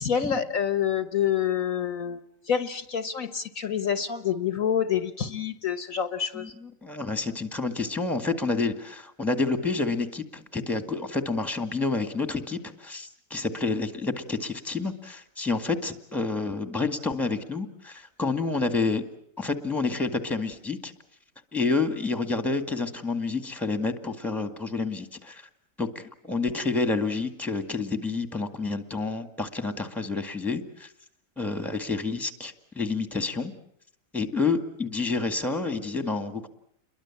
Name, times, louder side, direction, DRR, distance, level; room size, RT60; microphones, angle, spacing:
voice 1, 0.0-2.2 2.5-6.5, left 8 dB, 60° left, 11 dB, 1.6 m, -27 dB
voice 2, 6.3-19.0 19.4-20.9 21.5-25.4 25.8-30.9 31.4-33.5 34.1-36.5, left 3 dB, ahead, 8 dB, 1.9 m, -29 dB
29.5 x 22.5 x 7.3 m, 0.69 s
omnidirectional pair, 1.7 m